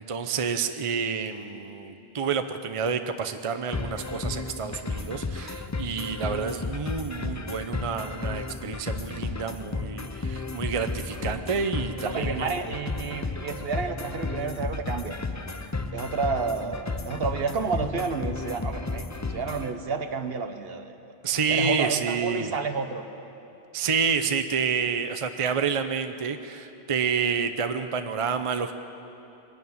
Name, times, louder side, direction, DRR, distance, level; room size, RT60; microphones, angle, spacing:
voice 1, 0.0-12.5 21.2-22.5 23.7-28.7, right 6 dB, 35° right, 8 dB, 0.7 m, -29 dB
sound 1, 3.7-19.7, left 3 dB, 20° left, 0.5 m, -33 dB
voice 2, 12.0-15.2 15.9-19.0 19.3-20.9 21.5-23.0, right 5 dB, 65° right, 8 dB, 1.3 m, -30 dB
22.0 x 13.0 x 9.5 m, 2.9 s
omnidirectional pair, 1.1 m